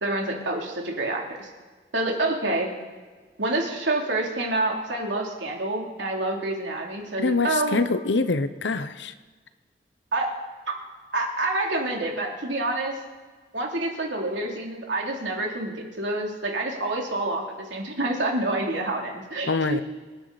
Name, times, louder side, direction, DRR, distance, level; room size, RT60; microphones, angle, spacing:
voice 1, 0.0-1.5 1.9-2.7 3.4-7.8 10.1-10.3 10.7-10.8 11.1-12.9 13.5-19.8, right 2 dB, 90° right, 0 dB, 3.0 m, -27 dB
voice 2, 7.2-9.1 19.5-19.8, left 3 dB, 85° left, 12 dB, 0.9 m, -25 dB
25.5 x 11.0 x 4.2 m, 1.4 s
head